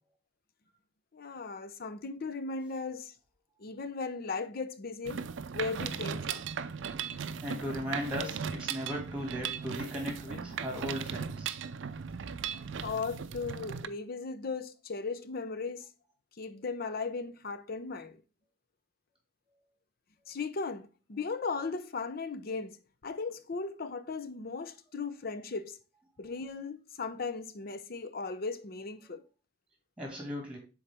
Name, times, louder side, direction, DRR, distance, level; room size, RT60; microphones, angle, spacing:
voice 1, 1.1-3.1 3.6-5.2 5.5-6.4 12.8-15.9 16.4-18.2 20.3-22.8 23.0-25.8 26.2-29.2, left 4 dB, 50° left, 0.6 m, -37 dB
Mechanisms, 5.0-13.9, right 7 dB, 70° right, 0.4 m, -37 dB
voice 2, 7.4-11.6 30.0-30.6, equal, 5° right, 2.3 m, -37 dB
7.0 x 4.0 x 3.4 m
head